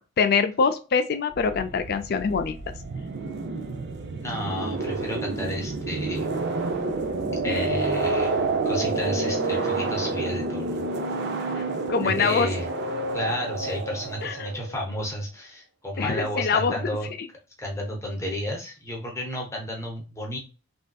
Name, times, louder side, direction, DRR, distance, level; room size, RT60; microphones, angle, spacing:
voice 1, 0.2-2.6 7.5-7.6 9.5-9.7 11.6-12.5 14.2-14.6 16.0-16.8, left 5 dB, 45° left, 10 dB, 0.3 m, -24 dB
sound 1, 1.3-14.7, right 3 dB, 50° right, 0.5 m, -29 dB
voice 2, 4.2-6.3 7.4-8.4 8.6-10.8 12.0-12.7 13.1-17.1 17.6-20.4, left 1 dB, 15° left, 0 dB, 0.7 m, -32 dB
3.3 x 2.7 x 2.2 m, 0.33 s
head